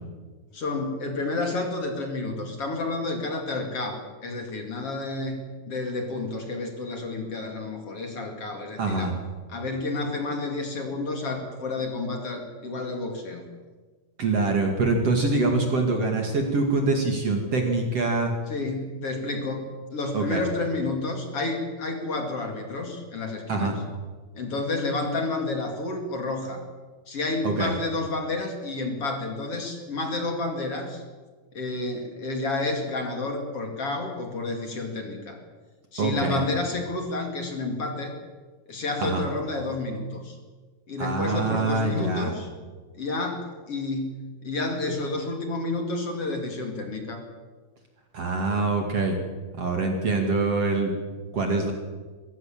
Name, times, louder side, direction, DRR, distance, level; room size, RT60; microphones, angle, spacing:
voice 1, 0.5-9.1 9.5-13.4 15.2-15.4 18.5-23.8 24.3-26.6 27.1-31.0 31.5-35.4 35.9-38.1 38.7-40.4 40.9-42.5 43.0-47.2, left 2 dB, 40° left, 3 dB, 2.5 m, -30 dB
voice 2, 8.8-9.1 14.2-18.3 20.1-20.4 23.5-23.7 27.4-27.7 36.0-36.4 39.0-39.2 41.0-42.3 48.1-49.2 49.6-50.9 51.3-51.7, right 3 dB, 45° right, 3 dB, 2.2 m, -24 dB
23.0 x 16.5 x 7.5 m, 1.4 s
omnidirectional pair, 5.7 m